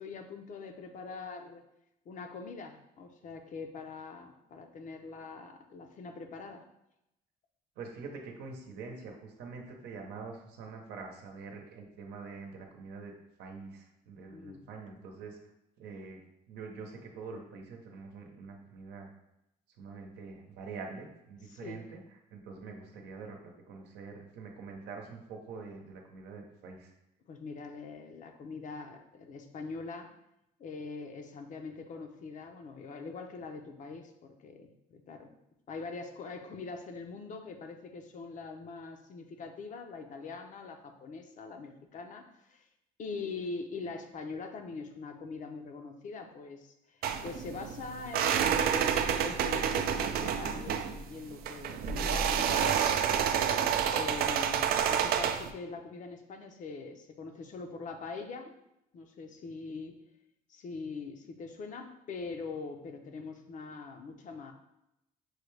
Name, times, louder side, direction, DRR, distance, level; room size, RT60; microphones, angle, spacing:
voice 1, 0.0-1.6 2.1-6.6 14.3-14.6 21.5-21.8 27.3-30.1 30.6-35.3 35.7-42.7 43.0-53.3 53.9-58.5 58.9-60.0 60.5-64.5, left 4 dB, 50° left, 5 dB, 0.6 m, -43 dB
voice 2, 7.8-13.1 13.4-15.4 15.8-16.2 16.5-19.1 19.8-22.0 22.3-23.4 23.7-26.9, right 4 dB, 80° right, 2 dB, 0.8 m, -45 dB
sound 1, 47.0-55.5, right 8 dB, 65° right, 0.4 m, -29 dB
6.3 x 2.2 x 3.2 m, 0.85 s
cardioid pair, 110°, 17 cm